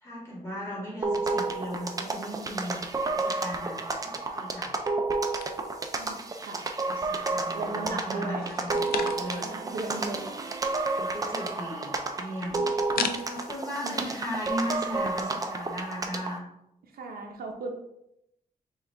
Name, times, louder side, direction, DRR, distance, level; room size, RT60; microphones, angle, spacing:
voice 1, 0.0-4.7 6.9-8.7 9.1-9.5 10.9-12.7 13.3-16.5, equal, 20° left, -6 dB, 1.7 m, -37 dB
sound 1, 1.0-16.4, right 3 dB, 25° right, 0.4 m, -31 dB
sound 2, 5.4-6.7 7.1-7.8 8.3-9.6 9.9-10.0 10.2-13.5, left 7 dB, 80° left, 0.4 m, -38 dB
voice 2, 7.3-8.5 8.8-9.0 9.5-10.3 12.5-12.7 13.0-13.1 13.8-14.0 16.9-17.7, right 3 dB, 90° right, 2 dB, 0.8 m, -36 dB
5.5 x 2.4 x 3.5 m, 0.81 s
wide cardioid pair, 160°, 15 cm